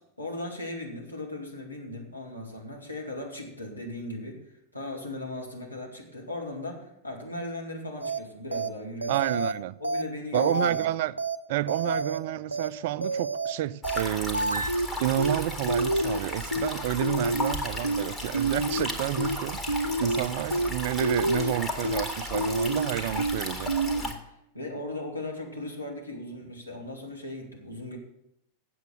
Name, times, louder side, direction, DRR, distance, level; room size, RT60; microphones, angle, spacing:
voice 1, 0.2-9.1 9.8-10.9 11.8-11.9 20.0-20.3 23.9-28.0, left 1 dB, 85° left, 2.6 m, -38 dB
sound 1, 8.0-8.2 8.5-8.7 9.0-9.5 9.8-10.0 10.3-10.9 11.2-11.4 11.7-12.2 12.5-12.7 13.0-13.5 13.8-14.0 14.3-14.9 15.2-15.4 15.7-16.2 16.5-16.7 17.0-17.5 17.8-18.0 18.3-18.9 19.2-19.4 19.7-20.2 20.5-20.7 21.0-21.5 21.8-22.0 22.3-22.9 23.2-23.4 23.7-24.0, right 2 dB, 85° right, 0.7 m, -28 dB
voice 2, 9.1-9.8 10.3-11.1 11.5-14.7 15.0-23.7, right 13 dB, 50° right, 0.4 m, -30 dB
sound 2, 13.8-24.1, left 1 dB, 15° left, 1.9 m, -35 dB
8.1 x 7.8 x 8.0 m
figure-of-eight pair, 90°, 0 cm